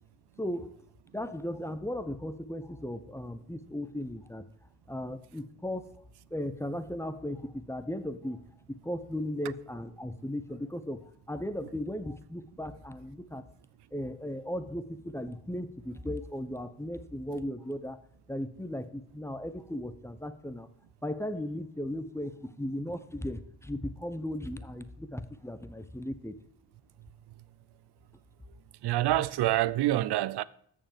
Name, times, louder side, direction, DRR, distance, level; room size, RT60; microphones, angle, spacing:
voice 1, 0.4-0.9 1.1-4.5 4.9-6.0 6.3-13.4 13.9-18.0 18.3-20.7 21.0-26.4, left 1 dB, 5° left, 0.7 m, -36 dB
voice 2, 28.8-30.4, right 15 dB, 55° right, 0.5 m, -26 dB
6.7 x 5.5 x 7.3 m
supercardioid pair, 60°, 49 cm